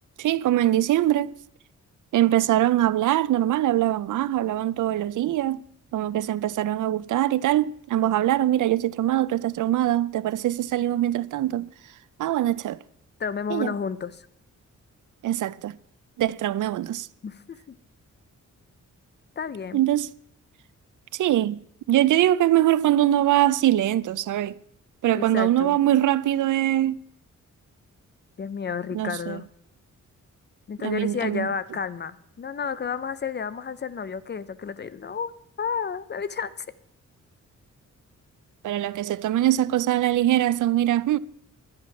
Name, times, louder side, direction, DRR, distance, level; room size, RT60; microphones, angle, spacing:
voice 1, 0.2-1.3 2.1-5.6 5.9-11.7 12.2-12.8 13.5-13.7 15.2-15.7 16.2-17.1 19.7-20.1 21.1-21.6 21.9-24.6 25.0-27.0 28.9-29.4 30.8-31.5 38.6-41.2, right 13 dB, 80° right, 0.5 m, -22 dB
voice 2, 13.2-14.3 17.2-17.7 19.4-19.8 25.1-25.8 28.4-29.4 30.7-35.3 35.6-36.5, left 6 dB, 35° left, 0.6 m, -31 dB
11.0 x 10.5 x 5.9 m
wide cardioid pair, 150°, 30 cm